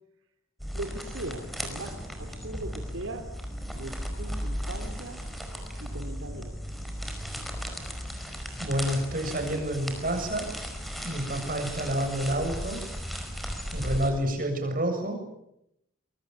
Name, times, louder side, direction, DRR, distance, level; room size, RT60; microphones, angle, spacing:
sound 1, 0.6-14.1, equal, ahead, 4.9 m, -36 dB
voice 1, 0.7-3.3 3.7-5.2 5.8-6.6, right 1 dB, 75° right, 5 dB, 3.1 m, -39 dB
voice 2, 8.6-10.5 11.0-12.8 13.7-15.2, right 1 dB, 40° right, 6 dB, 7.4 m, -29 dB
25.0 x 24.0 x 9.3 m, 0.82 s
head